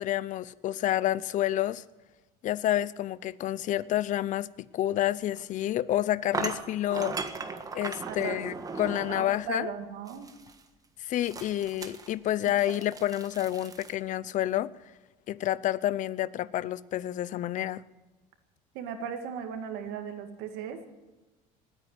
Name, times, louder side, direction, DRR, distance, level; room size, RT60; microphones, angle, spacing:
voice 1, 0.0-1.8 2.4-4.5 4.7-7.2 7.7-9.7 11.0-14.7 15.3-17.8, left 13 dB, 50° left, 20 dB, 0.6 m, -29 dB
sound 1, 5.3-5.4 6.3-9.4 10.1-10.6 11.2-13.9, right 4 dB, 20° right, 1.5 m, -37 dB
voice 2, 8.1-8.4 9.1-10.3 18.7-20.9, right 7 dB, 75° right, 7 dB, 2.1 m, -37 dB
19.5 x 9.0 x 8.1 m, 1.2 s
cardioid pair, 115°, 17 cm